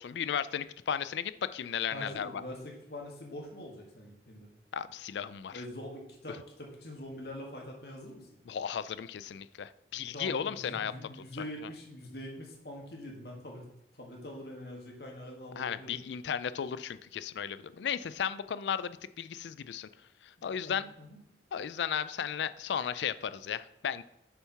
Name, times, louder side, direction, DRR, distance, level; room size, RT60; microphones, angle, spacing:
voice 1, 0.0-2.4 4.7-5.6 8.5-10.9 15.6-19.9 20.2-20.8 21.5-24.0, left 8 dB, 80° left, 15 dB, 0.4 m, -35 dB
voice 2, 1.9-4.5 5.5-8.3 10.1-13.6 14.0-15.9 20.4-21.2, left 1 dB, 60° left, 0 dB, 1.7 m, -44 dB
6.8 x 4.6 x 5.5 m, 0.78 s
head